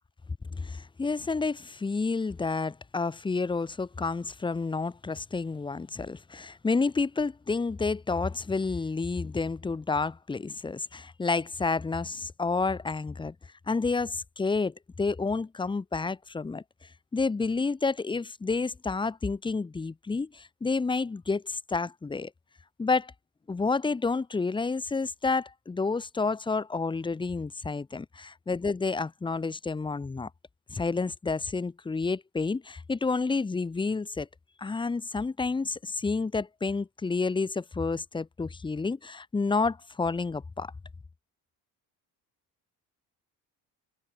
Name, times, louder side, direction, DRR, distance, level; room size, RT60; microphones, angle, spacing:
voice 1, 0.5-13.3 13.7-16.6 17.1-22.3 22.8-23.1 23.5-30.3 30.7-34.3 34.6-40.7, left 4 dB, 15° left, 1.1 m, -30 dB
cardioid pair, 170°, 37 cm